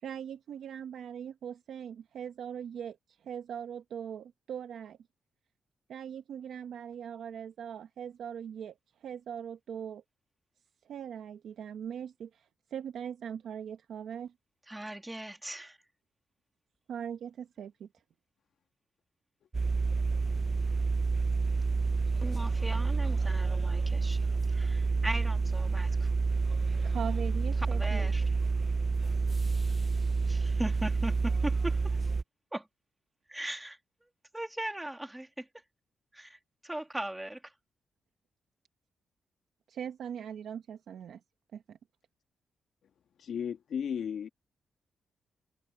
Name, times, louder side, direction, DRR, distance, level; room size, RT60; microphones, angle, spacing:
voice 1, 0.0-5.0 5.9-10.0 10.8-14.3 16.9-17.9 26.8-28.1 39.7-41.2 41.5-41.8, right 8 dB, 75° right, 0.9 m, -40 dB
voice 2, 14.7-15.8 22.2-24.2 24.5-26.1 27.7-28.2 30.2-32.0 32.5-32.7 33.3-33.8 34.3-35.5 36.2-36.3 36.7-37.4, right 1 dB, 10° right, 2.6 m, -38 dB
sound 1, 19.5-32.2, right 4 dB, 25° right, 0.5 m, -29 dB
voice 3, 43.2-44.3, left 8 dB, 65° left, 1.7 m, -35 dB
wide cardioid pair, 135°, 0 cm